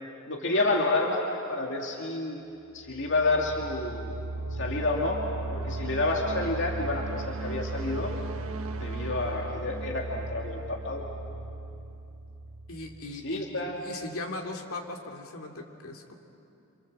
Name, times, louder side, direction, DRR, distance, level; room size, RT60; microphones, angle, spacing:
voice 1, 0.3-2.4 2.7-4.2 4.5-5.2 5.5-8.1 8.8-11.0 13.2-13.8, left 2 dB, 55° left, 0 dB, 2.4 m, -29 dB
sound 1, 2.8-13.6, right 2 dB, 75° right, 1.6 m, -36 dB
voice 2, 12.7-13.5 13.8-16.1, left 2 dB, 70° left, 2 dB, 2.7 m, -38 dB
28.0 x 27.5 x 7.6 m, 2.7 s
head